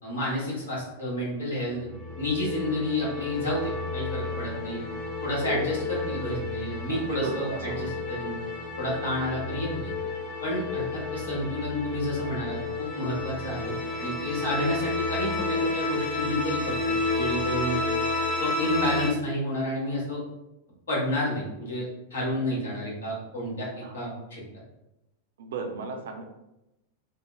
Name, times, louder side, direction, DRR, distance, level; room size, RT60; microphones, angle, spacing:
voice 1, 0.0-1.9 2.2-4.8 5.2-8.4 8.8-9.9 10.4-17.8 18.4-20.2 20.9-24.4, left 1 dB, 65° left, -5 dB, 1.2 m, -30 dB
sound 1, 1.7-19.1, left 3 dB, 45° left, 0.8 m, -31 dB
voice 2, 5.4-5.8 6.9-8.1 23.8-23.9 25.4-26.2, right 4 dB, 60° right, 4 dB, 0.4 m, -34 dB
3.5 x 2.1 x 3.2 m, 0.93 s
figure-of-eight pair, 90°, 0 cm